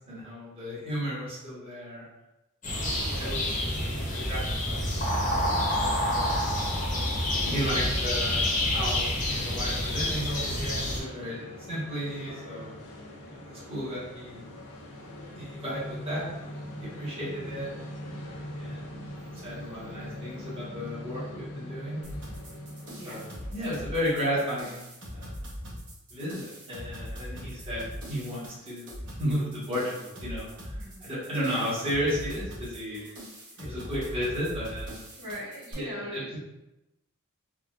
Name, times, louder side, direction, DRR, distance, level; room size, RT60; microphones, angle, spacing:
voice 1, 0.0-2.1 2.6-2.9 3.2-4.4 4.6-5.5 5.7-6.4 7.4-11.4 11.7-12.7 13.3-14.4 15.3-17.9 18.6-19.0 19.4-22.0 23.0-25.3 26.1-33.0 33.6-35.0 35.7-36.4, equal, 25° right, -9 dB, 1.2 m, -34 dB
sound 1, 2.6-11.0, left 1 dB, 35° left, 0.8 m, -28 dB
voice 2, 2.9-3.3 17.2-17.6 22.9-23.2 30.7-31.1 32.9-33.2 33.5-33.6 35.2-36.4, equal, 80° right, -6 dB, 1.1 m, -42 dB
sound 2, 4.9-23.8, left 1 dB, 75° left, 0.6 m, -42 dB
sound 3, 22.0-35.7, equal, 60° right, 1.1 m, -41 dB
3.6 x 2.2 x 2.4 m, 0.95 s
head